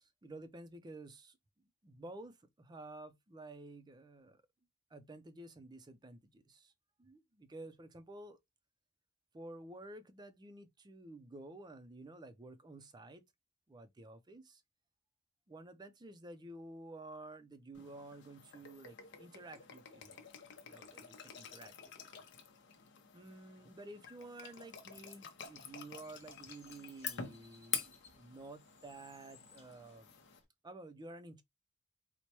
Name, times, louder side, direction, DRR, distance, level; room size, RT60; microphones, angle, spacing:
voice 1, 0.0-4.4 4.9-6.7 7.0-8.4 9.3-13.2 13.7-14.6 15.5-20.2 20.6-21.7 22.1-22.3 23.1-30.1 30.6-31.4, right 2 dB, 20° right, 0.5 m, -52 dB
sound 1, 17.7-30.4, left 7 dB, 60° left, 0.7 m, -48 dB
Bird, 25.4-30.4, left 4 dB, 30° left, 1.1 m, -64 dB
4.4 x 2.1 x 2.9 m
head